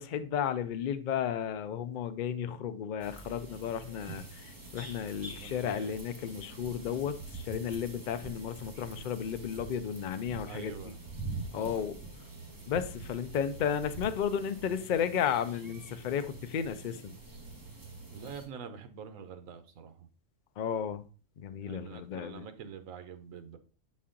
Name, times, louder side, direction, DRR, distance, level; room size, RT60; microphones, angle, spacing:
voice 1, 0.0-11.0 11.5-12.0 12.7-17.2 20.6-21.1 21.4-22.5, left 8 dB, 60° left, 0.5 m, -33 dB
sound 1, 3.0-18.5, right 3 dB, 15° right, 1.1 m, -45 dB
voice 2, 5.4-6.0 10.4-11.0 11.5-11.9 18.1-20.1 21.6-23.6, right 7 dB, 80° right, 1.1 m, -45 dB
7.1 x 4.2 x 3.7 m
omnidirectional pair, 1.4 m